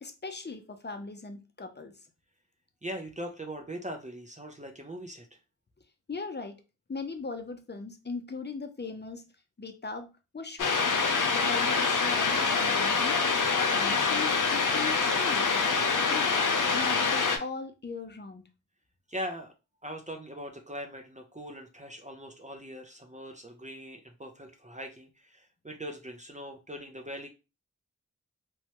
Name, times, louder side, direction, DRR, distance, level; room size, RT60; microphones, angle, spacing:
voice 1, 0.0-1.9 6.1-6.6 6.9-9.3 9.6-11.0 11.3-13.2 13.7-15.6 15.9-16.5 16.7-18.5, left 4 dB, 35° left, 7 dB, 0.6 m, -39 dB
voice 2, 2.8-5.4 19.1-19.5 19.8-27.3, equal, 25° right, 3 dB, 0.6 m, -41 dB
sound 1, 10.6-17.4, left 4 dB, 85° left, 0.5 m, -25 dB
3.1 x 2.2 x 2.9 m, 0.29 s
wide cardioid pair, 45°, 31 cm